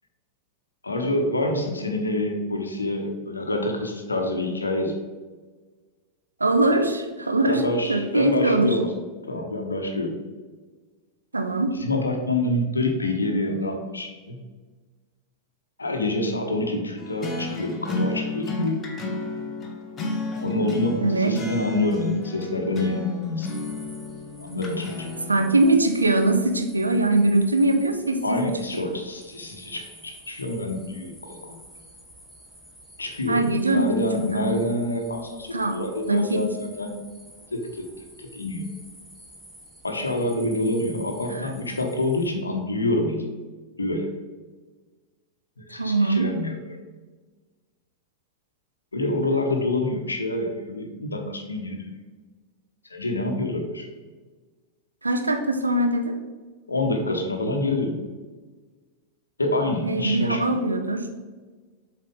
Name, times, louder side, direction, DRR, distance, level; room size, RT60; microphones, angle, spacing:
voice 1, 0.8-4.9 7.5-8.9 9.3-10.2 11.7-14.4 15.8-18.8 20.4-23.7 24.4-25.1 28.2-31.4 33.0-36.9 37.5-37.8 38.2-38.6 39.8-43.2 43.8-44.1 45.6-46.8 48.9-51.9 52.9-53.9 56.7-58.0 59.4-60.4, left 2 dB, 80° left, 3 dB, 1.1 m, -27 dB
voice 2, 6.4-7.6 7.9-8.8 11.3-11.7 21.0-21.4 25.3-28.9 33.3-33.9 35.5-35.8 36.1-36.4 41.3-41.5 45.7-46.3 55.0-56.2 59.8-61.1, right 2 dB, 80° right, 6 dB, 0.7 m, -22 dB
sound 1, 17.0-25.5, left 2 dB, 25° left, 1.2 m, -32 dB
sound 2, 23.5-42.3, equal, 5° right, 1.7 m, -49 dB
7.5 x 4.6 x 3.7 m, 1.4 s
figure-of-eight pair, 90°, 0 cm